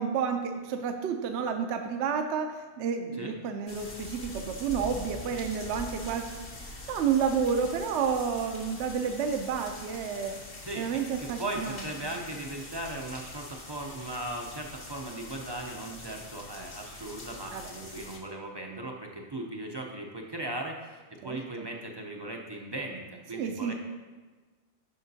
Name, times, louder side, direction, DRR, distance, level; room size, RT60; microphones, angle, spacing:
voice 1, 0.0-6.2 6.6-10.4 10.8-11.8 17.5-17.7 21.2-21.4 23.3-23.7, right 6 dB, 70° right, 5 dB, 0.8 m, -30 dB
sound 1, 3.7-18.2, left 2 dB, 50° left, 1.3 m, -44 dB
voice 2, 10.6-23.7, right 1 dB, 30° right, 0 dB, 0.4 m, -38 dB
10.5 x 5.8 x 2.7 m, 1.3 s
omnidirectional pair, 1.2 m